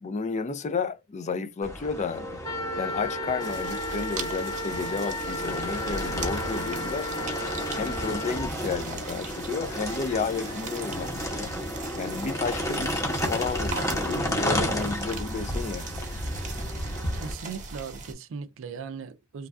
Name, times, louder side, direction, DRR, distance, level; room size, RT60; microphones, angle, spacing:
voice 1, 0.0-2.4 2.8-7.1 7.7-11.5 11.9-16.0, left 4 dB, 35° left, 0.4 m, -32 dB
sound 1, 1.6-17.3, equal, 15° left, 0.8 m, -32 dB
Wind instrument woodwind instrument, 2.4-8.5, left 1 dB, 75° left, 1.4 m, -34 dB
sound 2, 3.4-18.1, right 4 dB, 35° right, 0.8 m, -40 dB
voice 2, 17.1-19.5, right 5 dB, 65° right, 0.4 m, -38 dB
3.2 x 2.3 x 2.4 m
head